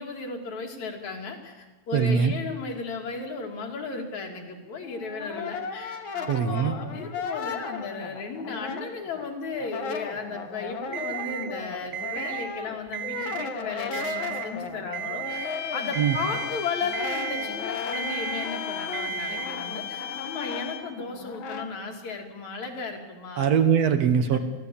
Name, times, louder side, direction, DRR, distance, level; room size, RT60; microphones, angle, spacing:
voice 1, 0.0-23.5 24.2-24.4, left 4 dB, 70° left, 2 dB, 4.0 m, -35 dB
voice 2, 1.9-2.3 6.3-6.7 16.0-16.2 23.4-24.4, right 7 dB, 65° right, 8 dB, 2.3 m, -22 dB
Brass instrument, 4.8-9.2 9.5-21.7, left 5 dB, 50° left, 2.0 m, -36 dB
Alarm, 10.9-11.5 11.9-12.5 12.9-13.5 13.9-14.5 14.9-15.5 15.9-16.5 16.9-17.5 17.9-18.5 18.9-19.5, right 15 dB, 85° right, 2.8 m, -34 dB
sound 1, 15.3-21.0, left 10 dB, 90° left, 3.0 m, -36 dB
23.5 x 16.0 x 8.6 m, 1.3 s
omnidirectional pair, 3.4 m